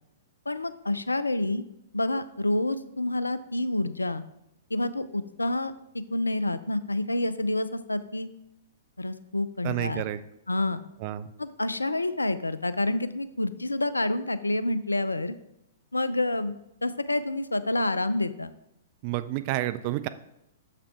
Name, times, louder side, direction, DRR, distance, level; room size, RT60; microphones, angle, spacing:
voice 1, 0.5-1.6 1.9-4.2 4.7-8.3 9.0-10.0 10.5-10.8 11.4-15.3 15.9-18.5, left 2 dB, 85° left, 14 dB, 0.4 m, -28 dB
voice 2, 9.6-10.2 11.0-11.3 19.0-20.1, right 15 dB, 40° right, 12 dB, 0.4 m, -29 dB
6.5 x 5.7 x 3.6 m, 0.84 s
figure-of-eight pair, 110°, 0 cm